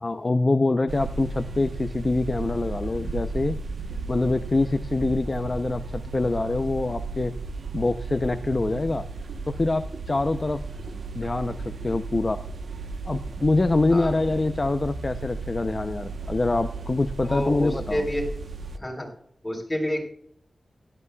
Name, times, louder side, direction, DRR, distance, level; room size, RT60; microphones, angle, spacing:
voice 1, 0.0-3.6 4.1-7.4 7.7-9.1 9.5-10.6 11.2-11.6 11.8-12.4 13.1-18.1, left 2 dB, 35° left, 9 dB, 0.5 m, -25 dB
sound 1, 0.9-18.8, right 3 dB, 80° right, 0.9 m, -35 dB
voice 2, 17.3-18.3 18.7-19.1 19.4-20.0, equal, 20° left, 1 dB, 3.7 m, -28 dB
16.5 x 12.0 x 2.3 m, 0.68 s
wide cardioid pair, 95°, 0 cm